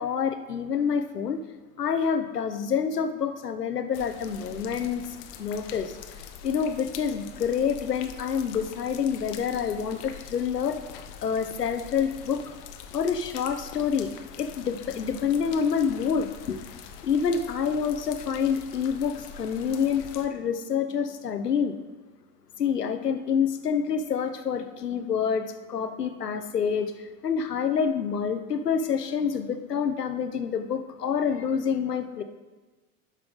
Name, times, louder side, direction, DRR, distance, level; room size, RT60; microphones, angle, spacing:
voice 1, 0.0-1.4 1.8-6.0 6.4-10.8 11.2-12.4 12.9-14.1 14.4-16.6 17.0-21.8 22.6-32.2, left 7 dB, 85° left, 9 dB, 0.8 m, -27 dB
sound 1, 3.9-20.3, left 7 dB, 40° left, 0.9 m, -44 dB
11.5 x 5.8 x 3.8 m, 1.3 s
figure-of-eight pair, 85°, 46 cm